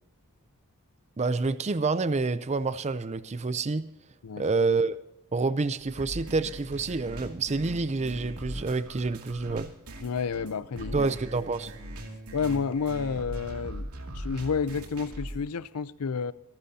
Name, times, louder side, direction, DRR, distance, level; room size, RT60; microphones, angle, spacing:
voice 1, 1.2-3.9 4.4-5.0 5.3-9.7 10.9-11.7, right 3 dB, 30° right, 0.5 m, -28 dB
sound 1, 5.8-15.5, right 1 dB, 80° right, 2.5 m, -40 dB
voice 2, 10.0-11.0 12.3-13.9 14.1-16.3, left 5 dB, 80° left, 0.5 m, -30 dB
25.5 x 12.0 x 2.8 m
head